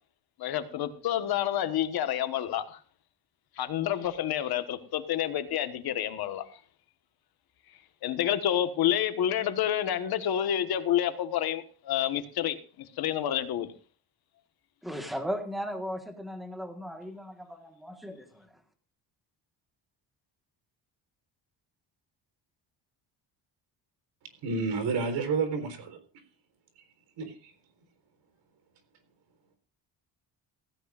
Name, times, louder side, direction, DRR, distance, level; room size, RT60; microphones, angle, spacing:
voice 1, 0.4-2.8 3.6-6.5 8.0-13.7, left 11 dB, 60° left, 1.5 m, -29 dB
voice 2, 14.8-18.5, equal, ahead, 1.5 m, -37 dB
voice 3, 24.4-26.0 27.2-27.5, right 4 dB, 85° right, 4.1 m, -30 dB
16.0 x 15.5 x 2.5 m
cardioid pair, 175°, 41 cm